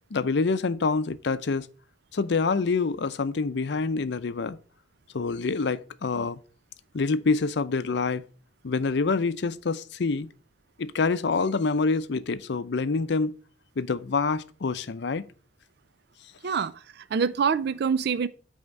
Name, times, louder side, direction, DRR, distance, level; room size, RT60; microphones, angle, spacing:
voice 1, 0.1-1.7 2.1-4.6 5.1-6.4 6.9-8.2 8.6-10.3 10.8-13.3 13.8-15.3, left 4 dB, 65° left, 0.6 m, -26 dB
voice 2, 16.4-18.3, right 6 dB, 60° right, 0.4 m, -26 dB
8.7 x 3.6 x 6.5 m
head